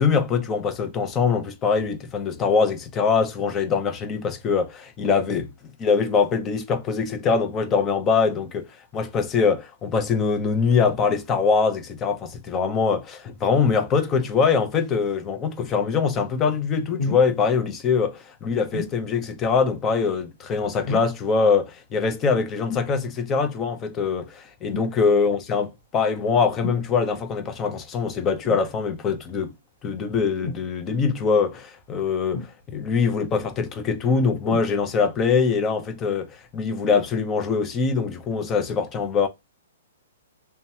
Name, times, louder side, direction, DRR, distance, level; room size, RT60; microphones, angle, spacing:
voice 1, 0.0-5.5 5.8-8.7 8.9-25.7 25.9-29.5 29.8-39.3, left 5 dB, 20° left, 0.7 m, -23 dB
sound 1, 17.0-17.3 18.7-19.0 20.8-21.2 22.7-22.9 24.7-25.0 26.6-26.9 28.4-28.7 30.4-30.6 32.3-32.9 34.4-34.7 35.5-35.6, left 3 dB, 55° left, 1.2 m, -31 dB
2.8 x 2.2 x 2.8 m
hypercardioid pair, 150°, 0 cm